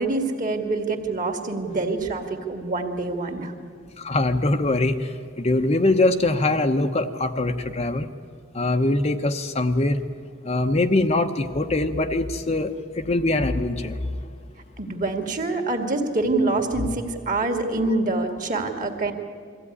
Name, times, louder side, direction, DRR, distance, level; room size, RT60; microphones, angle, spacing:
voice 1, 0.0-3.5 14.8-19.1, right 2 dB, 40° right, 5 dB, 2.1 m, -25 dB
voice 2, 4.0-8.1 8.5-10.0 10.4-12.7 13.0-14.0 16.8-16.9, left 2 dB, 35° left, 6 dB, 0.9 m, -22 dB
22.5 x 15.5 x 9.8 m, 2.2 s
head